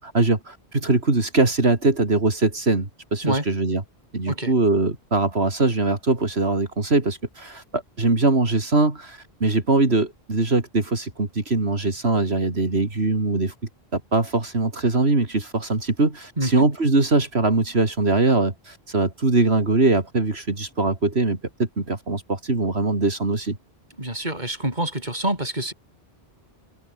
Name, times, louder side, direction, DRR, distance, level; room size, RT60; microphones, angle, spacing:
voice 1, 0.0-3.8 4.1-13.5 13.9-23.6, right 2 dB, 80° right, 3.9 m, -22 dB
voice 2, 16.4-16.7 24.0-25.7, right 1 dB, 45° right, 6.2 m, -26 dB
omnidirectional pair, 1.1 m